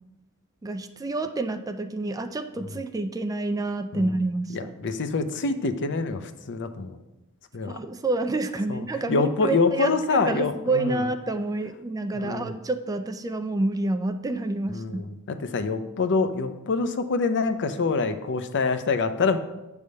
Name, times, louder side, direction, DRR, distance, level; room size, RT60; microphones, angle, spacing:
voice 1, 0.6-4.7 7.7-15.0, right 2 dB, 15° right, 8 dB, 0.3 m, -28 dB
voice 2, 4.5-7.0 7.5-7.8 8.7-11.0 12.1-12.5 14.7-19.4, left 4 dB, 55° left, 9 dB, 0.6 m, -26 dB
8.1 x 3.5 x 6.5 m, 0.98 s
head